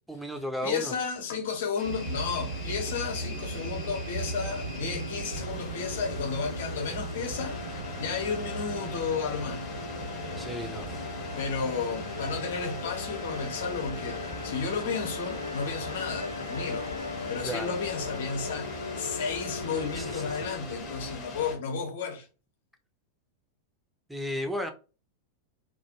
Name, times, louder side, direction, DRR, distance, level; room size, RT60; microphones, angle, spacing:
voice 1, 0.1-0.9 10.4-11.0 17.4-17.7 19.9-20.4 24.1-24.7, equal, 5° right, 0.5 m, -34 dB
voice 2, 0.6-7.6 8.0-9.6 11.3-16.9 17.3-22.3, left 5 dB, 60° left, 0.8 m, -33 dB
sound 1, 1.8-21.6, left 4 dB, 30° left, 1.0 m, -42 dB
sound 2, 1.8-21.2, right 2 dB, 80° right, 0.6 m, -40 dB
sound 3, 3.5-20.6, left 3 dB, 85° left, 0.3 m, -39 dB
2.4 x 2.2 x 2.8 m
figure-of-eight pair, 90°, 0 cm